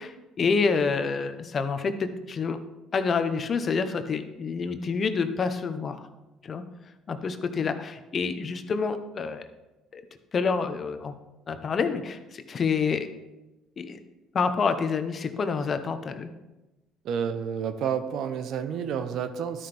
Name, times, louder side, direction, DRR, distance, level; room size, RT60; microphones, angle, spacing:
voice 1, 0.0-1.9 2.3-2.6 2.9-6.1 6.4-6.6 7.1-9.4 9.9-10.0 10.3-11.1 11.5-13.1 13.8-14.0 14.3-16.3, left 5 dB, 40° left, 8 dB, 0.8 m, -27 dB
voice 2, 17.0-19.7, right 7 dB, 70° right, 9 dB, 0.8 m, -30 dB
12.5 x 5.8 x 3.4 m, 1.0 s
supercardioid pair, 85°, 0 cm